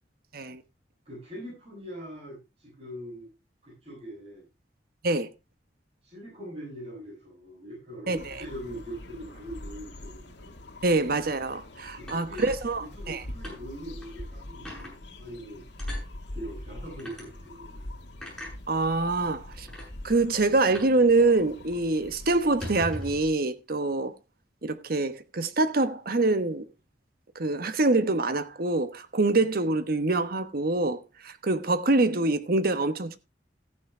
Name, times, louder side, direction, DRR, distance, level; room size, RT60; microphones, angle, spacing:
voice 1, 1.1-3.3 3.6-4.4 6.0-10.5 11.9-12.5 12.8-15.6 16.3-17.9, equal, 35° right, 7.2 m, -42 dB
sound 1, 8.1-23.3, left 1 dB, 80° left, 1.8 m, -43 dB
voice 2, 8.1-8.4 10.8-13.2 18.7-19.7 20.0-24.1 24.6-26.6 27.3-33.2, right 2 dB, 55° right, 1.1 m, -25 dB
sound 2, 12.1-13.2 13.4-13.6 14.0-14.1 14.6-14.9 15.8-16.1 17.0-17.2 18.2-18.5 19.3-19.4 19.7-19.9 20.7-21.0 21.3-21.4 21.7-21.9 22.4-23.2, left 1 dB, ahead, 7.5 m, -39 dB
14.5 x 9.6 x 3.3 m
head